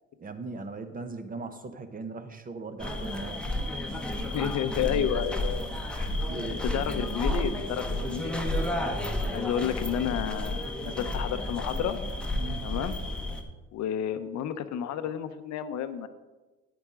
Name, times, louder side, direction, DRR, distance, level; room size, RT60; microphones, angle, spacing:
voice 1, 0.2-3.5 6.3-6.6 12.4-12.6, right 3 dB, 30° right, 8 dB, 0.9 m, -39 dB
sound 1, 2.8-13.4, left 1 dB, 5° left, 1.0 m, -31 dB
voice 2, 4.3-5.6 5.9-6.1 6.5-8.3 9.3-12.0 12.6-13.0 13.7-16.1, left 9 dB, 65° left, 10 dB, 0.7 m, -31 dB
9.6 x 9.3 x 3.7 m, 1.2 s
cardioid pair, 110°, 30 cm